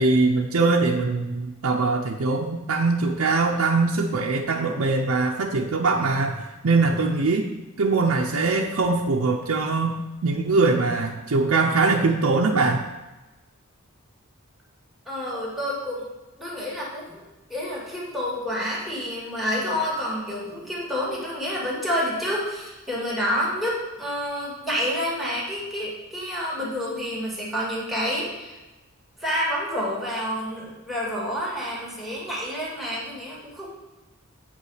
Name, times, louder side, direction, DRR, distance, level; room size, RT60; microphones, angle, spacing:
voice 1, 0.0-6.4 6.6-7.5 7.8-12.8, right 3 dB, 70° right, 0 dB, 0.6 m, -22 dB
voice 2, 15.1-16.0 16.4-17.2 17.5-28.6 29.2-33.7, equal, ahead, -7 dB, 2.4 m, -28 dB
8.6 x 5.3 x 4.9 m, 1.1 s
head